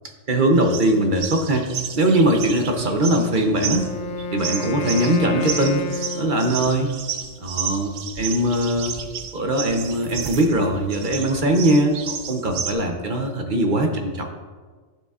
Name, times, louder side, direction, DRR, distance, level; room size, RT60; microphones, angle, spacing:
voice 1, 0.3-1.7 1.9-3.9 4.3-5.8 6.2-6.9 7.4-8.9 9.3-14.2, right 1 dB, 45° right, 3 dB, 0.8 m, -21 dB
sound 1, 0.6-12.7, right 7 dB, 85° right, 1.1 m, -32 dB
Wind instrument woodwind instrument, 3.6-6.9, left 2 dB, 70° left, 0.4 m, -30 dB
11.5 x 6.8 x 2.4 m, 1.4 s
omnidirectional pair, 1.4 m